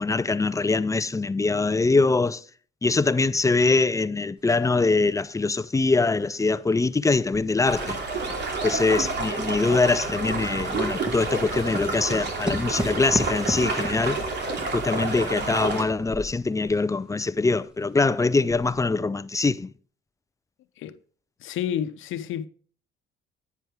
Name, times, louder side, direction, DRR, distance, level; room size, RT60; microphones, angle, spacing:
voice 1, 0.0-2.4 2.8-8.0 8.6-14.2 14.7-19.7, left 3 dB, 15° left, 0.5 m, -23 dB
sound 1, 4.5-4.6 5.1-7.0 7.3-16.9 17.1-17.2 17.7-17.8 18.3-18.8, equal, 5° right, 1.7 m, -36 dB
sound 2, 7.6-15.8, right 3 dB, 60° right, 2.8 m, -29 dB
voice 2, 21.4-22.5, left 10 dB, 80° left, 0.9 m, -30 dB
10.5 x 9.4 x 3.6 m
cardioid pair, 90°, 20 cm